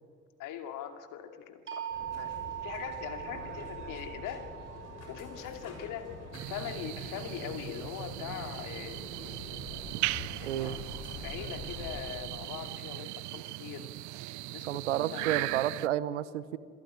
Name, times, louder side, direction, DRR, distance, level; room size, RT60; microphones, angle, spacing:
voice 1, 0.4-4.5 5.1-6.1 6.5-9.0 10.4-10.8 11.2-13.9 14.5-15.4, left 10 dB, 60° left, 6 dB, 2.5 m, -41 dB
sound 1, 1.7-7.6, right 11 dB, 35° right, 6.3 m, -43 dB
sound 2, 1.9-12.0, left 3 dB, 45° left, 6.8 m, -46 dB
sound 3, 6.3-15.9, right 21 dB, 55° right, 0.5 m, -38 dB
voice 2, 10.4-10.8 14.7-16.6, right 12 dB, 80° right, 18 dB, 0.9 m, -31 dB
27.0 x 15.0 x 9.6 m, 2.1 s
hypercardioid pair, 55°, 35 cm